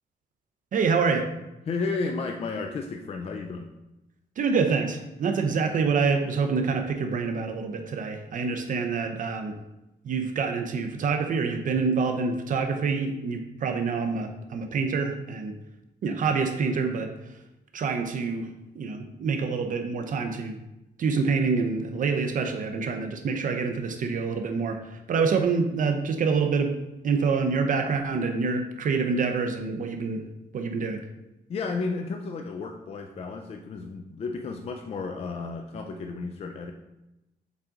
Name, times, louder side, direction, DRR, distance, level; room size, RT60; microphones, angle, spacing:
voice 1, 0.7-1.3 4.4-9.6 10.0-15.5 16.0-17.4 17.7-20.6 21.0-26.8 27.0-30.3 30.5-31.0, right 5 dB, 50° right, 5 dB, 0.6 m, -26 dB
voice 2, 1.7-3.7 31.5-36.7, left 4 dB, 35° left, 4 dB, 0.4 m, -32 dB
7.2 x 3.7 x 3.8 m, 0.95 s
wide cardioid pair, 165°, 17 cm